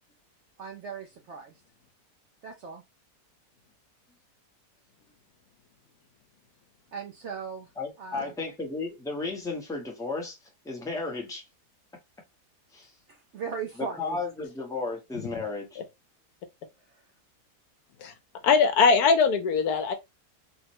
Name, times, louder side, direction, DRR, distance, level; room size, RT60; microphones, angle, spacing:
voice 1, 0.6-1.6 2.4-2.8 6.9-7.7 8.0-8.3 13.1-14.2 16.9-17.0, right 6 dB, 65° right, 0.7 m, -38 dB
voice 2, 7.8-10.4 10.6-11.4 12.7-12.9 13.8-15.8, left 3 dB, 5° left, 0.6 m, -34 dB
voice 3, 18.4-19.9, left 5 dB, 75° left, 1.1 m, -21 dB
3.6 x 2.1 x 2.9 m
omnidirectional pair, 1.7 m